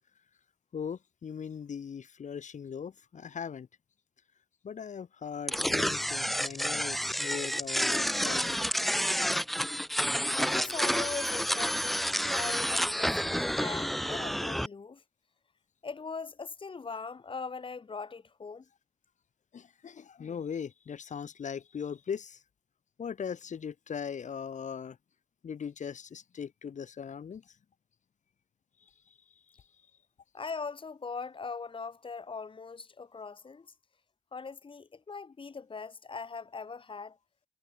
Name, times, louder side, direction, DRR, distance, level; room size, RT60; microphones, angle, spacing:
voice 1, 0.7-3.7 4.6-8.6 19.5-22.4 23.0-25.0 25.4-27.5 29.1-29.2 29.5-29.6, left 7 dB, 75° left, 7.9 m, -39 dB
sound 1, 5.5-14.7, equal, ahead, 1.3 m, -29 dB
voice 2, 10.3-15.0 15.8-18.6 30.3-33.7 34.3-37.2, left 4 dB, 45° left, 7.9 m, -40 dB
wide cardioid pair, 145°, 13 cm